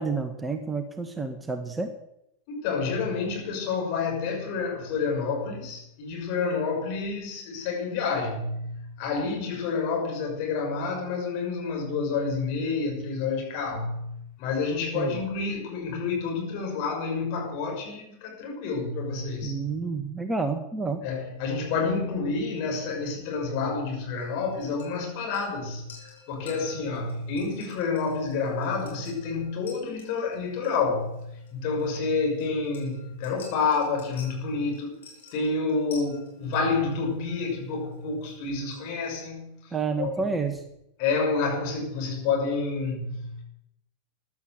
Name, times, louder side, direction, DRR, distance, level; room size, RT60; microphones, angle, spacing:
voice 1, 0.0-1.9 14.9-15.2 19.4-21.0 39.7-40.6, right 4 dB, 10° right, 1.5 m, -29 dB
voice 2, 2.5-19.7 21.0-25.8 26.3-35.0 35.3-40.4 41.0-43.4, left 4 dB, 45° left, 6.4 m, -29 dB
sound 1, 24.2-39.1, left 5 dB, 65° left, 6.8 m, -51 dB
14.5 x 11.5 x 8.0 m
figure-of-eight pair, 90°, 0 cm